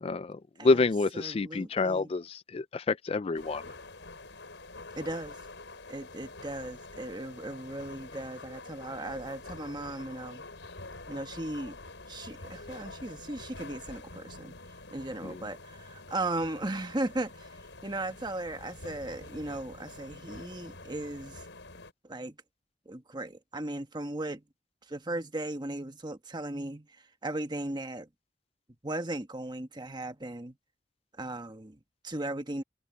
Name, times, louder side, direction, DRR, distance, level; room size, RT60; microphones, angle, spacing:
voice 1, 0.0-3.6 15.2-15.4, left 3 dB, 30° left, 0.4 m, -28 dB
voice 2, 1.1-2.1 4.9-5.4 5.9-10.5 11.1-11.8 12.1-14.6 14.9-17.5 17.8-21.4 22.0-22.4 22.8-24.4 24.9-28.1 28.8-30.6 31.2-32.6, right 2 dB, 25° right, 1.4 m, -37 dB
sound 1, 3.3-21.9, left 3 dB, 85° left, 4.9 m, -47 dB
head